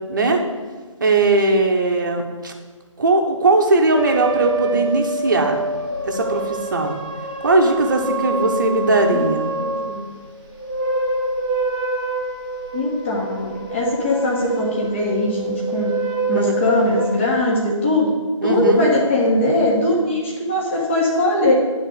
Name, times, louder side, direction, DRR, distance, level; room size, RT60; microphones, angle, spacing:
voice 1, 0.1-0.4 1.0-2.5 3.0-5.6 6.0-7.0 7.4-9.5 16.3-16.4 18.4-18.8, right 2 dB, 35° right, 3 dB, 1.0 m, -19 dB
sound 1, 3.9-10.0 10.5-17.4, right 3 dB, 10° right, 1.2 m, -26 dB
voice 2, 9.5-10.0 12.7-15.9 16.3-18.1 18.4-21.5, left 1 dB, 25° left, -4 dB, 1.5 m, -20 dB
10.5 x 4.0 x 6.5 m, 1.5 s
figure-of-eight pair, 155°, 17 cm